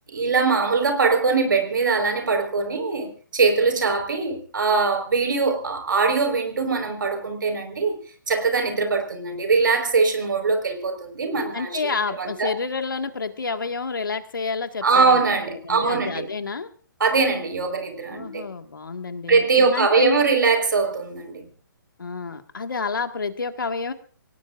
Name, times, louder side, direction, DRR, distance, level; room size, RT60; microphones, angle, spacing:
voice 1, 0.1-8.0 8.3-11.8 12.2-12.5 14.8-16.3 17.0-18.4 19.3-21.5, right 4 dB, 65° right, 6 dB, 4.7 m, -22 dB
voice 2, 11.5-15.2 15.6-16.7 18.1-20.2 22.0-23.9, left 4 dB, 70° left, 8 dB, 1.9 m, -29 dB
28.5 x 17.5 x 2.6 m, 0.40 s
figure-of-eight pair, 130°, 11 cm